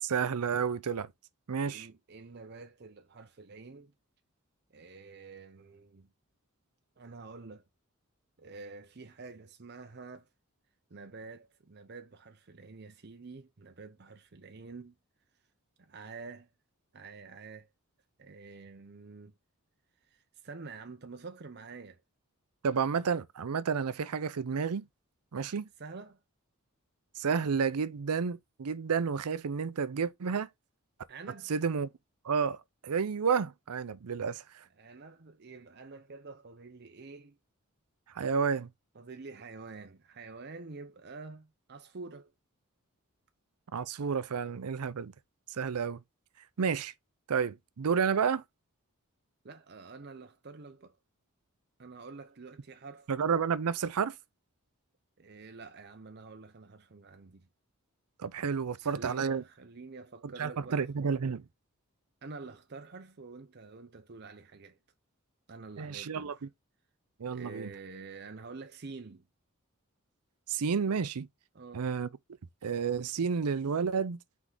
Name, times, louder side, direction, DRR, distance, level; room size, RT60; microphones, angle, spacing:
voice 1, 0.0-1.1 1.5-1.9 22.6-24.9 25.3-25.7 27.2-30.5 31.5-31.9 32.2-34.6 38.1-38.7 43.7-45.1 45.5-46.0 46.6-46.9 47.3-48.4 53.1-54.1 58.2-59.4 60.2-61.4 65.8-66.4 67.2-67.7 70.5-71.3 71.7-72.1 72.6-74.2, right 6 dB, 90° right, 0.5 m, -31 dB
voice 2, 1.6-3.9 4.7-6.1 7.0-7.6 8.4-10.3 10.9-15.0 15.8-16.5 16.9-17.7 18.2-19.3 20.0-22.0 25.8-26.2 31.1-31.5 34.8-37.4 38.9-42.3 49.4-51.0 51.8-53.1 55.2-57.5 58.8-60.9 62.2-64.8 65.5-66.5 67.3-69.3 71.5-71.9, right 4 dB, 45° right, 0.7 m, -48 dB
6.0 x 4.7 x 3.8 m
head